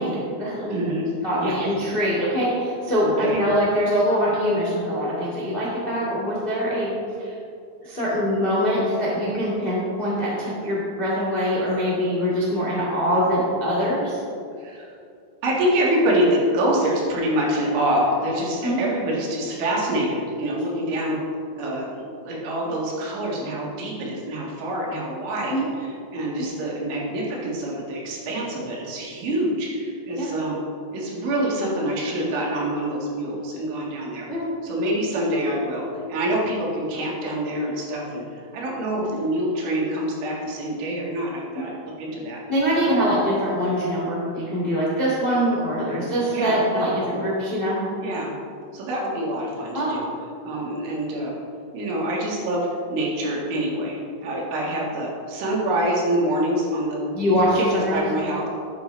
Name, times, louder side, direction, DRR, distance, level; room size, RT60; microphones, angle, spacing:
voice 1, 0.0-0.8 1.2-6.9 7.2-7.3 7.8-14.2 18.6-18.8 25.5-25.6 26.4-26.5 30.2-30.3 34.3-34.5 41.5-41.7 42.5-47.8 49.7-50.0 57.1-58.0, equal, 55° left, -7 dB, 0.6 m, -23 dB
voice 2, 0.7-1.1 1.3-1.6 3.0-3.4 14.6-14.9 15.4-21.2 21.5-30.6 30.9-34.3 34.6-38.2 38.5-42.4 42.8-43.0 46.3-46.6 48.0-48.4 48.7-50.1 50.4-51.4 51.7-57.2 57.5-58.5, right 1 dB, 80° right, -3 dB, 4.3 m, -26 dB
13.0 x 9.1 x 3.3 m, 2.4 s
omnidirectional pair, 5.4 m